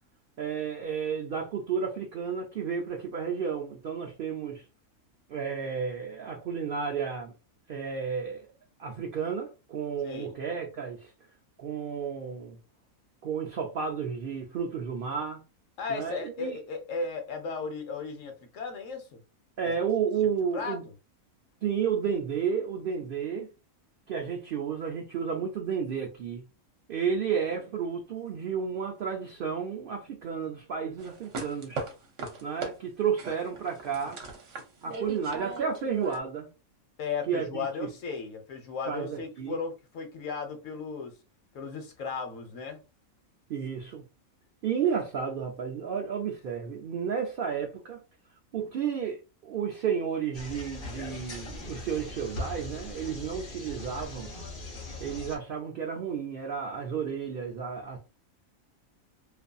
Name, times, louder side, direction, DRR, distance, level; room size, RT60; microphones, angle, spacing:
voice 1, 0.4-4.6 5.3-7.3 7.7-8.5 8.8-11.1 11.6-12.6 13.2-15.4 15.9-16.6 19.6-20.8 21.6-23.5 24.1-26.5 26.9-31.8 32.4-34.2 34.8-36.5 37.3-37.9 38.9-39.6 43.5-44.1 44.6-48.0 48.5-54.3 55.0-58.0, right 7 dB, 85° right, 0.4 m, -32 dB
voice 2, 10.0-10.4 15.8-19.2 19.6-19.7 20.5-20.8 37.0-41.2 41.5-42.8, left 4 dB, 65° left, 1.0 m, -35 dB
sound 1, 31.0-32.7 33.2-36.2, right 3 dB, 65° right, 1.0 m, -38 dB
sound 2, 50.3-55.4, left 2 dB, 45° left, 0.9 m, -40 dB
2.5 x 2.5 x 2.2 m
omnidirectional pair, 1.5 m